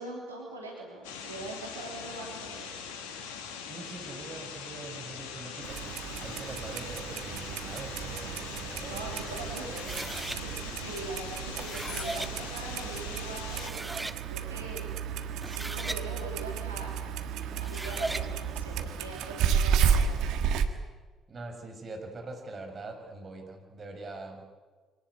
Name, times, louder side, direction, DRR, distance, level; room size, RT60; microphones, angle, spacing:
voice 1, 0.0-2.7 8.8-9.9 10.3-10.5 10.7-14.0 14.3-14.9 15.4-17.0 17.6-20.1, right 2 dB, 90° right, -1 dB, 3.2 m, -42 dB
sound 1, 1.0-13.7, left 6 dB, 75° left, 2.5 m, -41 dB
voice 2, 3.6-5.8 6.2-10.1 19.2-19.3 21.3-24.4, right 2 dB, 40° right, 4 dB, 5.7 m, -43 dB
Clock, 5.6-20.7, right 7 dB, 65° right, 1.5 m, -32 dB
sound 2, 9.7-10.4 11.4-12.3 13.1-13.2 13.5-14.2 15.2-16.0 17.5-18.3, right 2 dB, 15° right, 1.6 m, -37 dB
24.5 x 18.5 x 9.3 m, 1.4 s
figure-of-eight pair, 45°, 0 cm